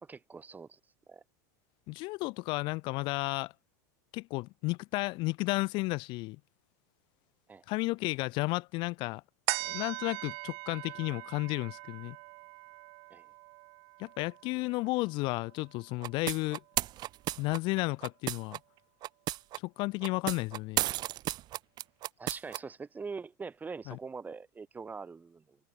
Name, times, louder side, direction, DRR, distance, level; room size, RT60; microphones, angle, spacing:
voice 1, 0.0-0.8 1.1-1.2 7.5-7.6 13.1-13.3 22.2-25.6, right 4 dB, 15° right, 1.0 m, -43 dB
voice 2, 1.9-3.5 4.1-6.4 7.7-9.2 9.6-12.2 14.0-16.6 17.4-18.6 19.6-20.8 23.9-24.0, left 23 dB, 50° left, 0.6 m, -33 dB
sound 1, 9.5-16.2 16.7-16.8, right 34 dB, 60° right, 2.0 m, -41 dB
sound 2, 16.0-18.6 19.0-19.6 20.0-22.6, right 15 dB, 45° right, 0.9 m, -33 dB
hypercardioid pair, 105°, 10 cm